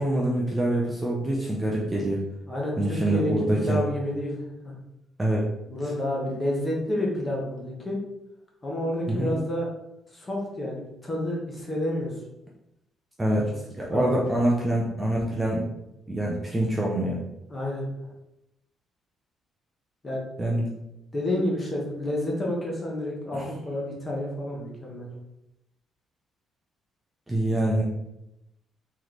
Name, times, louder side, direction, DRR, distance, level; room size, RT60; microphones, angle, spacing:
voice 1, 0.0-2.2 2.8-3.8 5.2-5.4 9.1-9.3 13.2-13.4 13.8-15.7 16.1-17.2 20.4-20.7 23.3-23.5 27.3-27.8, right 1 dB, 10° right, -3 dB, 0.5 m, -25 dB
voice 2, 2.5-4.4 4.6-4.7 5.7-8.0 8.6-9.7 10.1-12.2 13.2-13.4 13.9-14.0 14.4-14.5 17.5-18.1 20.0-20.2 21.1-25.1, left 1 dB, 20° left, -3 dB, 1.0 m, -29 dB
3.1 x 3.1 x 4.0 m, 0.88 s
cardioid pair, 170°, 0 cm